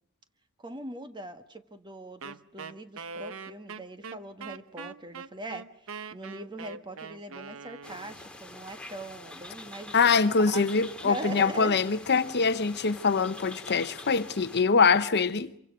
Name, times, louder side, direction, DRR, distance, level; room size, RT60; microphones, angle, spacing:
voice 1, 0.6-11.8, right 1 dB, 20° right, 1.5 m, -41 dB
Wind instrument woodwind instrument, 2.2-8.3, right 5 dB, 65° right, 0.9 m, -42 dB
sound 1, 7.8-14.6, left 2 dB, 5° left, 2.2 m, -46 dB
voice 2, 9.9-15.6, left 5 dB, 50° left, 0.9 m, -24 dB
27.0 x 24.0 x 6.2 m
head